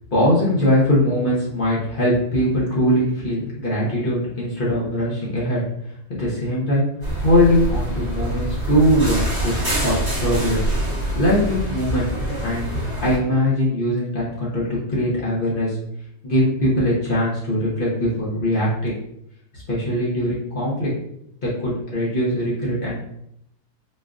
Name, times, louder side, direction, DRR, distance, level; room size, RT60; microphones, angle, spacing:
voice 1, 0.1-5.6 6.1-6.8 7.2-10.6 11.1-12.1 12.4-12.7 13.0-15.8 16.2-19.0 19.7-20.9 21.4-23.0, equal, 45° left, -7 dB, 0.7 m, -21 dB
sound 1, 7.0-13.2, right 1 dB, 15° right, 1.0 m, -25 dB
4.3 x 2.4 x 2.4 m, 0.75 s
omnidirectional pair, 1.9 m